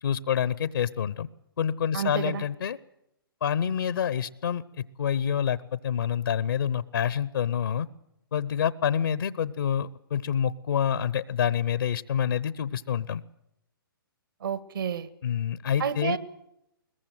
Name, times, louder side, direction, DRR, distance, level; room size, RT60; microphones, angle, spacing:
voice 1, 0.0-1.3 1.6-2.8 3.4-4.6 5.0-7.9 8.3-13.2 15.2-16.2, left 8 dB, 65° left, 18 dB, 0.8 m, -27 dB
voice 2, 1.9-2.4 14.4-15.1 15.8-16.2, right 8 dB, 65° right, 13 dB, 1.8 m, -30 dB
22.0 x 20.0 x 7.7 m, 0.84 s
figure-of-eight pair, 130°, 12 cm